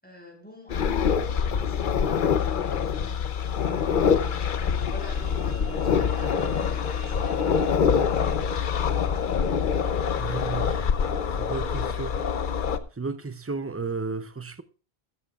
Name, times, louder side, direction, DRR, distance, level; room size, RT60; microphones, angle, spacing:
voice 1, 0.0-3.1 3.6-4.4 4.9-9.8, equal, 10° left, 4.6 m, -47 dB
sound 1, 0.7-12.8, left 7 dB, 55° left, 0.8 m, -25 dB
sound 2, 3.6-11.1, right 3 dB, 75° right, 1.3 m, -47 dB
voice 2, 10.2-10.9 11.4-12.2 13.0-14.6, right 4 dB, 20° right, 0.5 m, -33 dB
15.5 x 13.5 x 2.4 m
omnidirectional pair, 1.0 m